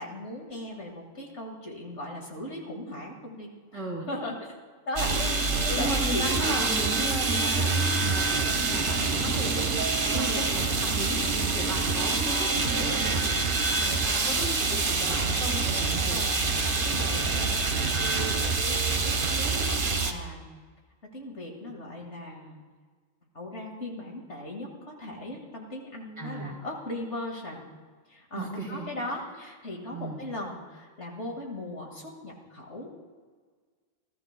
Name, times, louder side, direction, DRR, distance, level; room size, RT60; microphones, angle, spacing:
voice 1, 0.0-4.6 4.9-6.7 10.1-10.5 16.1-16.4 16.6-20.5 21.1-22.6 23.3-27.7 28.1-32.9, left 1 dB, 60° left, 0 dB, 2.2 m, -38 dB
voice 2, 3.7-4.1 5.6-9.7 10.0-16.3 26.2-26.6 28.3-28.9 29.9-30.2, right 1 dB, 20° right, -2 dB, 3.2 m, -36 dB
sound 1, 5.0-20.1, right 3 dB, 45° right, 1.1 m, -26 dB
29.5 x 13.0 x 2.2 m, 1.5 s
omnidirectional pair, 1.4 m